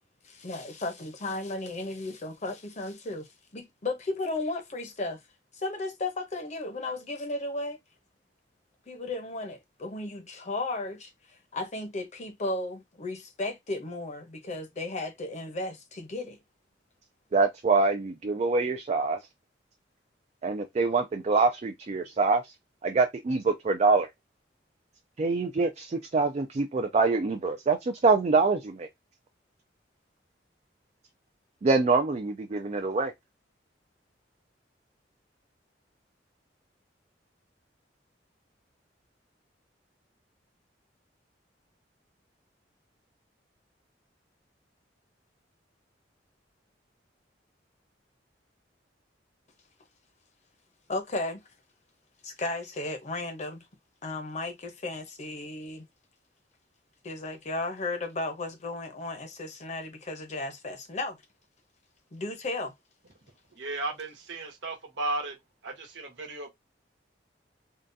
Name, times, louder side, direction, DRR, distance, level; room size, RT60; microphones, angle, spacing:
voice 1, 0.2-5.2 5.5-7.8 8.9-11.1 11.5-16.4 50.9-51.4 52.2-53.6 54.0-55.9 57.0-61.2 62.1-62.7, left 2 dB, 40° left, 0.7 m, -34 dB
voice 2, 17.3-19.2 20.4-22.4 22.8-24.1 25.2-28.9 31.6-33.1, right 4 dB, 35° right, 0.4 m, -25 dB
voice 3, 63.6-65.4 65.6-66.5, right 2 dB, 80° right, 1.1 m, -34 dB
3.7 x 2.3 x 2.6 m
head